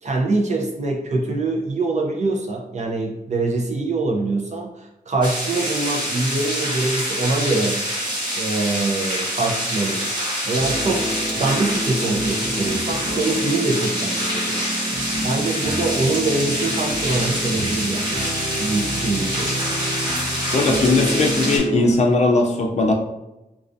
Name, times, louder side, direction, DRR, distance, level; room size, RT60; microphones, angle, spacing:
voice 1, 0.0-7.8 8.3-10.1 10.4-11.1 11.4-14.7 15.2-18.3 18.6-19.9, right 3 dB, 45° right, 0 dB, 0.5 m, -24 dB
sound 1, 5.2-21.6, equal, 30° right, 1.0 m, -26 dB
sound 2, 10.6-21.9, equal, 80° right, 0.8 m, -29 dB
voice 2, 20.5-22.9, left 2 dB, 45° left, 2 dB, 0.4 m, -18 dB
2.3 x 2.3 x 2.5 m, 0.92 s
wide cardioid pair, 150°, 16 cm